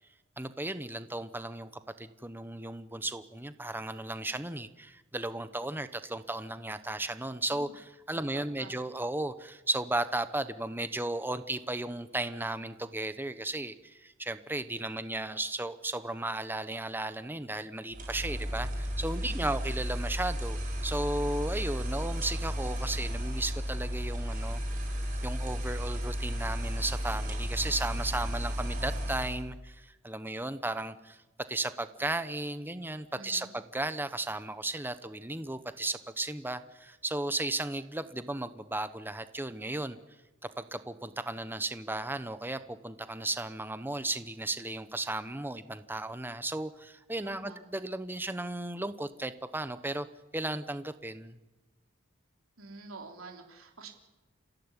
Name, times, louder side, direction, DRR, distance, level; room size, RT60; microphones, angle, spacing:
voice 1, 0.4-1.7 2.0-20.6 20.8-24.6 25.2-31.2 31.5-40.0 40.4-50.1 50.3-51.4, right 2 dB, 10° right, 12 dB, 1.0 m, -35 dB
voice 2, 8.1-8.7 19.2-19.5 33.2-33.5 47.2-47.6 52.6-53.9, right 3 dB, 90° right, 2 dB, 3.5 m, -48 dB
sound 1, 17.9-29.5, equal, 40° right, 5.9 m, -33 dB
27.5 x 16.0 x 9.9 m, 1.1 s
head